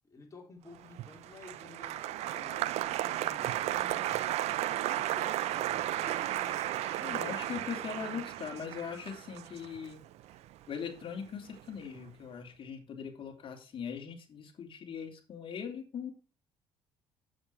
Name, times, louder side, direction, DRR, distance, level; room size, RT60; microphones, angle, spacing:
voice 1, 0.1-4.3 4.9-7.8, left 3 dB, 25° left, 3.9 m, -53 dB
Applause, 0.8-11.2 11.5-12.1, right 14 dB, 70° right, 0.6 m, -34 dB
Wind instrument woodwind instrument, 5.0-9.1, right 1 dB, 50° right, 5.6 m, -54 dB
voice 2, 7.0-10.1 10.7-16.1, left 7 dB, 50° left, 2.7 m, -40 dB
7.9 x 7.8 x 4.6 m
supercardioid pair, 70°, 11 cm